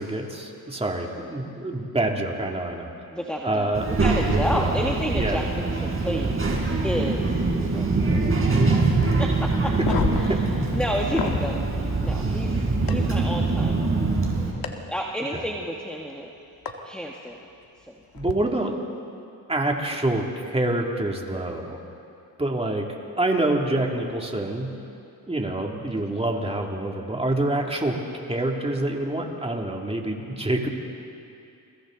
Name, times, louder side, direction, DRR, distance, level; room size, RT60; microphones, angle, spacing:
voice 1, 0.0-2.9 3.4-3.9 4.5-4.7 5.1-5.4 15.3-15.4 18.1-18.7 19.5-21.8 22.4-22.9 23.2-24.7 25.3-28.0 28.3-30.7, right 1 dB, 15° right, 0 dB, 2.7 m, -26 dB
voice 2, 3.1-5.4 5.8-7.4 7.7-8.6 9.2-9.8 10.2-10.4 10.7-14.6 14.9-16.3 16.8-17.4 17.9-18.0, equal, 5° left, -1 dB, 1.6 m, -31 dB
Child speech kid speaking, 3.7-14.5, right 3 dB, 35° right, 4.3 m, -23 dB
sound 1, 9.7-11.5 12.9-13.0 14.6-14.7 16.7-16.8 18.1-18.3, left 6 dB, 70° left, 1.7 m, -28 dB
29.5 x 22.5 x 4.0 m, 2.7 s
cardioid pair, 90°, 37 cm